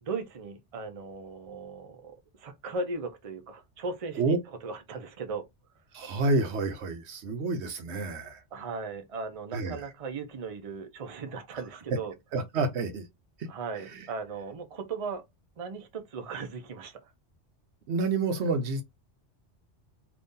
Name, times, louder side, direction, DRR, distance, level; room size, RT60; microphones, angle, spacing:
voice 1, 0.0-5.4 8.1-12.1 13.5-15.2 15.6-17.0, right 4 dB, 40° right, 0.6 m, -37 dB
voice 2, 5.9-8.4 9.5-9.8 12.3-13.0 17.9-18.8, right 3 dB, 75° right, 1.0 m, -28 dB
2.7 x 2.6 x 3.6 m
omnidirectional pair, 1.2 m